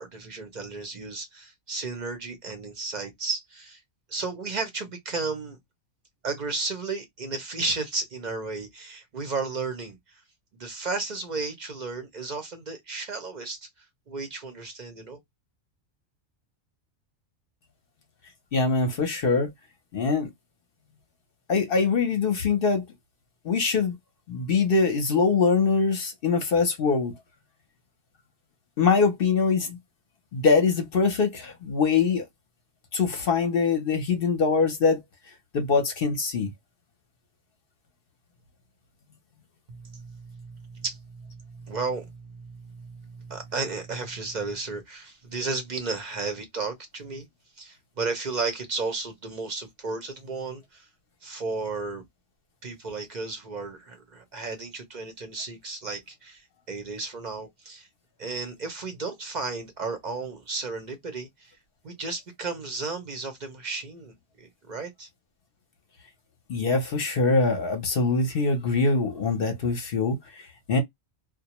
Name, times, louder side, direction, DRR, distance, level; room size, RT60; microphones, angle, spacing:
voice 1, 0.0-3.8 4.1-5.6 6.2-10.0 10.6-13.7 14.1-15.2 39.7-47.3 47.6-50.9 51.2-52.0 52.6-57.9 58.2-61.5 61.8-65.1, right 3 dB, 45° right, 0.6 m, -34 dB
voice 2, 18.5-19.5 19.9-20.3 21.5-22.8 23.4-24.0 24.3-27.1 28.8-29.8 30.3-32.2 32.9-35.0 35.5-36.5 66.5-70.8, left 4 dB, 55° left, 0.8 m, -23 dB
2.3 x 2.1 x 2.8 m
omnidirectional pair, 1.4 m